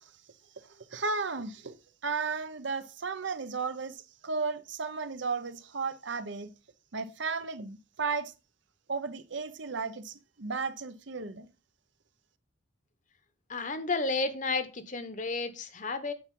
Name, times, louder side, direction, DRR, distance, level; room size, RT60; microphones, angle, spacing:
voice 1, 0.6-1.7 2.0-6.5 6.9-8.3 8.9-11.5, right 4 dB, 65° right, 0.8 m, -34 dB
voice 2, 13.5-16.1, left 3 dB, 40° left, 1.0 m, -32 dB
8.7 x 7.1 x 3.7 m
head